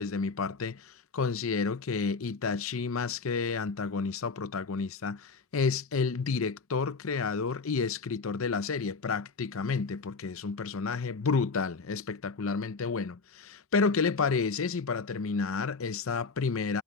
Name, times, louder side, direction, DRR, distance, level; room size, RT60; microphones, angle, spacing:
voice 1, 0.0-16.8, left 5 dB, 80° left, 0.7 m, -30 dB
head